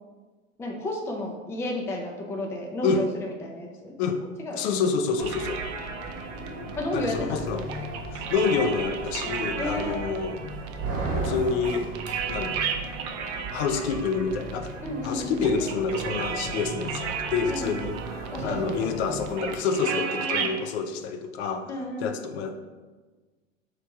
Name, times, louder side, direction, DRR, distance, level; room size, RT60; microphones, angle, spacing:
voice 1, 0.6-3.9 4.4-4.6 6.8-7.4 9.6-10.0 14.8-15.5 17.5-17.8 18.3-19.0 19.8-20.5 21.7-22.1, left 1 dB, 5° left, 0 dB, 0.4 m, -32 dB
voice 2, 4.6-5.6 6.9-7.7 8.1-10.4 11.1-11.9 12.3-12.6 13.5-14.7 15.0-21.7 22.0-22.5, left 5 dB, 55° left, 7 dB, 0.5 m, -28 dB
sound 1, 5.2-19.6, right 2 dB, 40° right, 1.4 m, -36 dB
sound 2, 5.2-20.6, right 6 dB, 55° right, 0.6 m, -35 dB
3.3 x 3.1 x 4.6 m, 1.3 s
hypercardioid pair, 95°, 39 cm